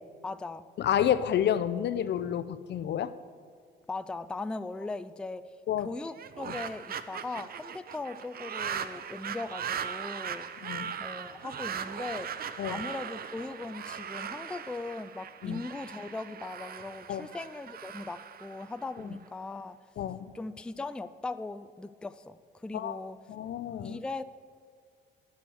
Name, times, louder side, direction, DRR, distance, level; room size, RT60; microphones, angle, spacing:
voice 1, 0.2-0.7 3.9-5.4 5.8-10.5 11.0-19.8 20.3-23.2 23.8-24.2, left 3 dB, 5° left, 12 dB, 0.3 m, -39 dB
voice 2, 0.8-3.1 5.7-5.9 10.6-10.9 12.6-12.7 15.4-15.6 17.1-17.3 20.0-20.3 22.7-23.0 23.3-24.0, left 10 dB, 60° left, 14 dB, 0.5 m, -29 dB
sound 1, 6.1-19.3, right 8 dB, 50° right, 0.6 m, -39 dB
10.5 x 6.4 x 7.9 m, 2.1 s
cardioid pair, 90°, 20 cm